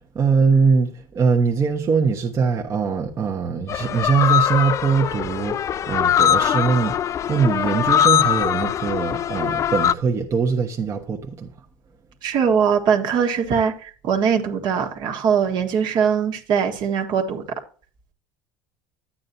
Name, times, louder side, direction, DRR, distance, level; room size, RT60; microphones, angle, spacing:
voice 1, 0.1-5.6 5.9-11.5, right 5 dB, 35° right, 1.1 m, -21 dB
sound 1, 3.7-9.9, left 10 dB, 35° left, 0.3 m, -21 dB
voice 2, 12.2-17.4, right 7 dB, 55° right, 1.6 m, -21 dB
11.0 x 8.6 x 2.7 m
supercardioid pair, 100°, 9 cm